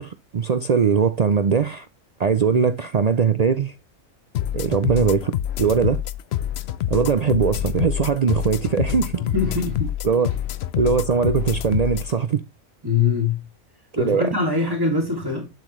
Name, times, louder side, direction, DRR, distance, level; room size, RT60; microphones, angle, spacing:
voice 1, 0.0-1.9 2.2-3.7 4.5-6.0 6.9-9.2 10.0-10.3 10.7-12.4 14.0-14.3, right 6 dB, 55° right, 0.4 m, -20 dB
sound 1, 4.3-12.1, left 11 dB, 65° left, 0.8 m, -27 dB
voice 2, 9.2-9.9 12.8-13.4 14.0-15.5, left 4 dB, 20° right, 2.6 m, -23 dB
7.7 x 7.5 x 3.1 m
omnidirectional pair, 1.3 m